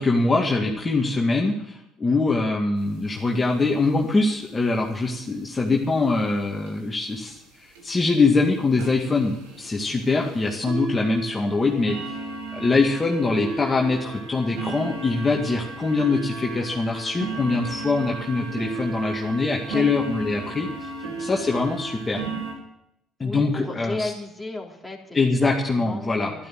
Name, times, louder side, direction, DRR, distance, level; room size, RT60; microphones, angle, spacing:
voice 1, 0.0-12.0 12.5-20.9 21.2-22.2 23.2-24.1 25.1-26.5, left 3 dB, 25° left, -1 dB, 2.1 m, -23 dB
sound 1, 2.8-2.9 3.2-3.3 3.5-3.6 4.0-4.3 5.1-5.2 5.7-5.8 6.2-6.3 6.7-6.8 7.3-7.4 7.8-7.9 8.4-8.5 8.8-22.5, right 4 dB, 85° right, 4.7 m, -34 dB
voice 2, 23.2-26.5, left 2 dB, ahead, -2 dB, 3.6 m, -35 dB
12.5 x 12.0 x 7.7 m, 0.82 s
supercardioid pair, 80°, 0 cm